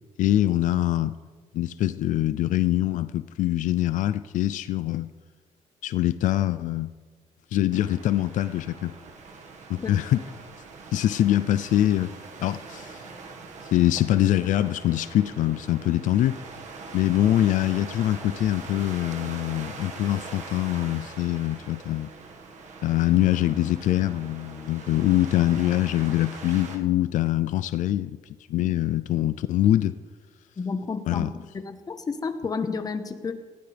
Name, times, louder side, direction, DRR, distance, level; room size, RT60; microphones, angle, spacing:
voice 1, 0.2-1.2 1.5-5.1 5.8-6.9 7.5-8.9 9.7-10.2 10.9-12.1 12.4-13.0 13.6-16.4 16.9-22.1 22.8-28.2 28.5-29.9 31.1-31.3, left 13 dB, 80° left, 13 dB, 0.4 m, -24 dB
sound 1, 7.7-26.8, right 4 dB, 70° right, 1.7 m, -42 dB
voice 2, 30.6-31.3 31.5-33.3, left 4 dB, 30° left, 8 dB, 1.1 m, -31 dB
19.5 x 15.5 x 3.4 m, 1.5 s
cardioid pair, 130°, 13 cm